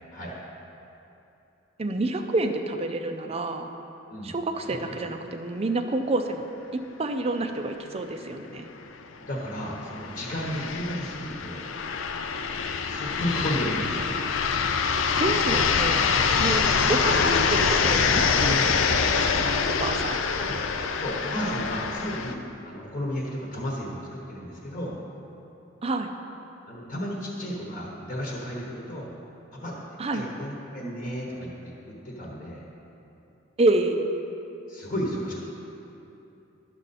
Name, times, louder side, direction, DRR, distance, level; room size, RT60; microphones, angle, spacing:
voice 1, 1.8-3.7 4.2-6.4 6.7-8.7 15.2-16.1 16.4-16.6 16.9-19.4 19.8-20.2 25.8-26.1 30.0-30.3 33.6-34.0, right 2 dB, 30° right, 6 dB, 0.5 m, -28 dB
sound 1, 8.3-8.4 8.6-8.7 9.5-22.3, left 5 dB, 80° left, 0.5 m, -25 dB
voice 2, 9.2-11.6 12.9-14.1 19.4-19.5 20.4-20.6 21.0-25.0 26.7-29.1 29.5-29.7 30.1-32.6 34.7-35.4, equal, 40° left, -4 dB, 1.1 m, -33 dB
11.5 x 6.5 x 4.1 m, 2.9 s
head